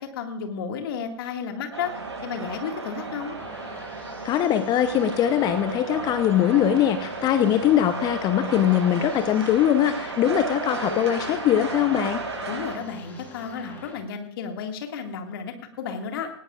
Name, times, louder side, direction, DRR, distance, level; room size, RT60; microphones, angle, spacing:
voice 1, 0.1-1.9 2.2-3.4 12.5-16.3, left 6 dB, 50° left, 4 dB, 2.1 m, -32 dB
sound 1, 1.7-12.8, right 3 dB, 75° right, 6.0 m, -34 dB
sound 2, 3.4-13.9, left 2 dB, 10° left, 4.1 m, -46 dB
voice 2, 4.2-12.2, left 10 dB, 25° left, 10 dB, 0.8 m, -22 dB
19.0 x 17.5 x 2.5 m, 0.65 s
figure-of-eight pair, 105°, 15 cm